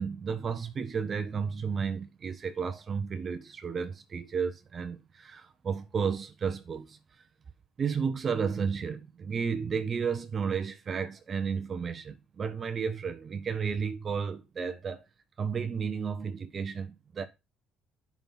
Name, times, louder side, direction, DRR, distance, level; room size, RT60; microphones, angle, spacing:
voice 1, 0.0-7.0 7.8-15.0 15.4-17.3, right 6 dB, 40° right, 1.4 m, -32 dB
11.0 x 6.1 x 5.6 m
supercardioid pair, 80°, 0 cm